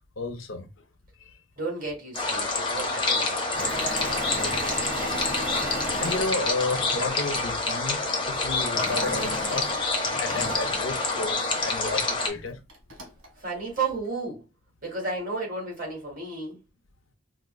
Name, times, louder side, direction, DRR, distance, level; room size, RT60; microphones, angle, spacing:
voice 1, 0.2-0.7 1.2-1.3 3.8-5.6 5.9-9.7 10.2-12.6, left 3 dB, 75° left, 0.7 m, -33 dB
voice 2, 1.6-3.5 13.4-14.4 14.8-16.6, right 3 dB, 45° right, 1.7 m, -33 dB
sound 1, 2.1-12.3, left 3 dB, 25° left, 0.7 m, -27 dB
Engine / Mechanisms, 3.5-7.3 8.7-11.7 12.3-12.4 12.7-13.3, right 1 dB, 70° right, 1.3 m, -36 dB
4.6 x 2.1 x 2.3 m
head